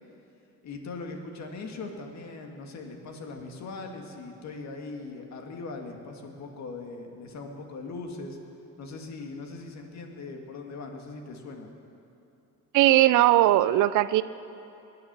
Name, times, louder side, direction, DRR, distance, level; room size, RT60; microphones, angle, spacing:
voice 1, 0.6-8.4 8.8-11.7, left 3 dB, 60° left, 3 dB, 1.9 m, -40 dB
voice 2, 12.7-14.2, right 14 dB, 70° right, 15 dB, 0.5 m, -19 dB
21.0 x 8.7 x 6.8 m, 2.9 s
cardioid pair, 120°, 32 cm